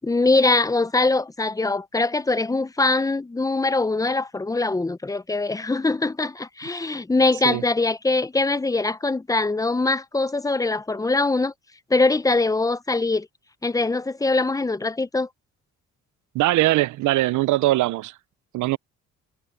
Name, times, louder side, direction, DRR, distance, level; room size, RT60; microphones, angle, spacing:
voice 1, 0.0-11.5 11.9-13.3 13.6-15.3, left 3 dB, 10° left, 0.7 m, -22 dB
voice 2, 16.3-18.1 18.5-18.8, right 17 dB, 80° right, 0.6 m, -21 dB
cardioid pair, 90°, 30 cm